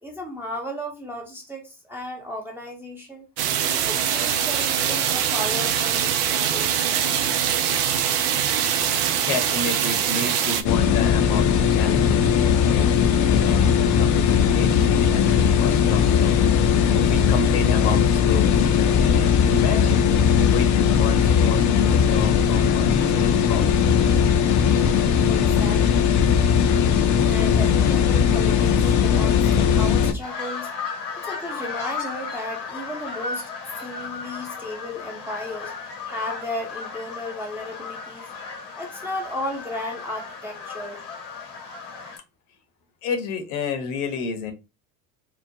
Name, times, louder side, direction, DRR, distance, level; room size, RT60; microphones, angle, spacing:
voice 1, 0.0-3.3 3.7-7.1 25.2-26.1 27.3-30.7 31.2-33.5 33.8-35.7 36.1-38.3 38.8-41.1, left 1 dB, 5° right, 0.7 m, -34 dB
sound 1, 3.4-10.6, right 9 dB, 70° right, 0.6 m, -23 dB
voice 2, 9.3-13.7 14.0-16.3 16.9-23.8 43.0-44.5, left 5 dB, 65° left, 0.9 m, -31 dB
sound 2, 10.6-30.1, left 7 dB, 40° left, 0.5 m, -19 dB
sound 3, 30.2-42.2, left 4 dB, 80° left, 1.2 m, -35 dB
2.9 x 2.0 x 2.6 m
hypercardioid pair, 75°, 49 cm